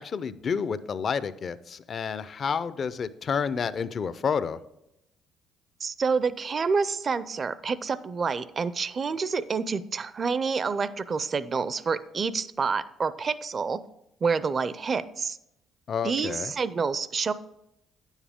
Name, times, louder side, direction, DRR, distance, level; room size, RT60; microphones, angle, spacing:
voice 1, 0.0-4.6 15.9-16.5, left 6 dB, 50° left, 15 dB, 0.5 m, -30 dB
voice 2, 5.8-13.8 14.2-15.4 16.0-17.3, right 5 dB, 40° right, 16 dB, 0.5 m, -28 dB
9.7 x 7.2 x 3.6 m, 0.83 s
supercardioid pair, 75°, 0 cm